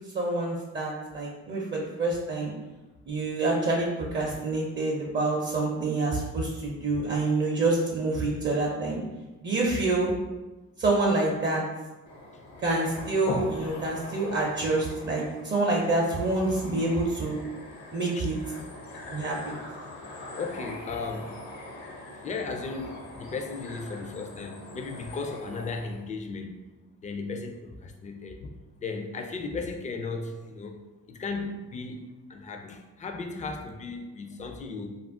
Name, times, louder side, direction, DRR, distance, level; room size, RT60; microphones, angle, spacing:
voice 1, 0.1-2.5 3.1-9.0 9.4-10.1 10.8-11.6 12.6-17.4 17.9-18.4 19.1-19.5, right 2 dB, 40° right, -2 dB, 0.5 m, -27 dB
sound 1, 12.1-26.0, left 1 dB, 70° left, 0.7 m, -41 dB
voice 2, 20.4-21.4 22.2-26.6 27.0-30.8 31.1-34.9, left 4 dB, 25° left, 4 dB, 0.3 m, -36 dB
2.4 x 2.0 x 3.5 m, 1.1 s
cardioid pair, 90°, 30 cm